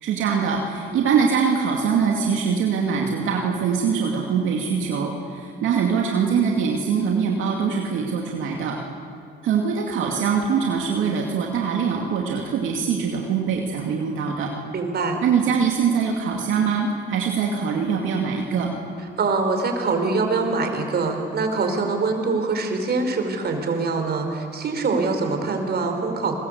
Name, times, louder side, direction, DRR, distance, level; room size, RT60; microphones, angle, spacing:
voice 1, 0.0-8.8 9.4-14.5 15.2-18.7, right 6 dB, 85° right, 0 dB, 2.5 m, -23 dB
voice 2, 14.7-15.2 19.2-26.4, right 3 dB, 55° right, 5 dB, 4.9 m, -24 dB
29.5 x 21.0 x 8.2 m, 2.3 s
cardioid pair, 90°, 20 cm